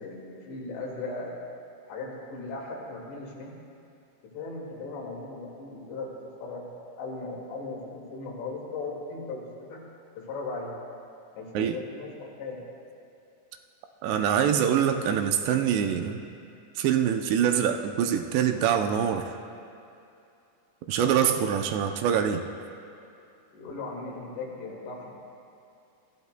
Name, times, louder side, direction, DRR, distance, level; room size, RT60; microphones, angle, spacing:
voice 1, 0.0-1.4 1.9-3.5 4.3-6.1 6.4-6.7 7.0-9.8 10.2-10.7 11.3-12.6 23.5-25.1, left 3 dB, 80° left, -3 dB, 4.3 m, -37 dB
voice 2, 14.0-16.2 16.8-19.3 20.9-22.5, right 8 dB, 80° right, 5 dB, 2.7 m, -24 dB
23.0 x 14.0 x 2.2 m, 2.6 s
omnidirectional pair, 5.0 m